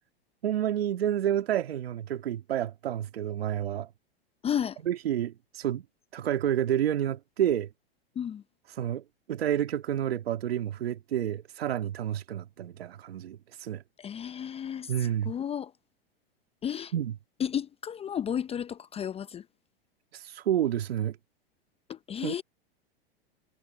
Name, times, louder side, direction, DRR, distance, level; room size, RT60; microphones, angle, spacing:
voice 1, 0.4-3.9 4.8-5.8 6.1-7.7 8.7-9.0 9.3-13.8 14.9-15.3 16.9-17.1 20.1-21.2 22.2-22.4, right 10 dB, 75° right, 2.0 m, -29 dB
voice 2, 4.4-4.8 8.2-8.4 14.0-15.7 16.6-16.9 17.4-19.5 21.9-22.4, left 9 dB, 20° left, 0.7 m, -33 dB
hypercardioid pair, 105°, 30 cm